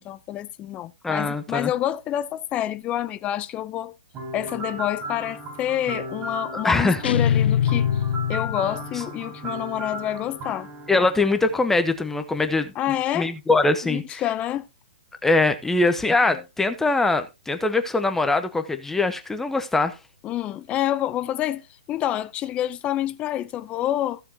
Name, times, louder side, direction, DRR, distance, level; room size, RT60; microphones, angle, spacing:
voice 1, 0.0-3.9 4.3-8.0 8.3-10.7 12.8-13.3 13.8-14.7 20.2-24.2, left 12 dB, 20° left, 0.7 m, -28 dB
voice 2, 1.0-1.7 6.5-7.0 10.9-12.7 13.1-14.2 15.2-19.9, left 3 dB, 5° left, 1.1 m, -22 dB
sound 1, 4.1-12.0, equal, 30° right, 5.2 m, -36 dB
sound 2, 7.0-9.1, left 9 dB, 75° left, 0.5 m, -23 dB
15.5 x 7.0 x 2.9 m
hypercardioid pair, 140°, 6 cm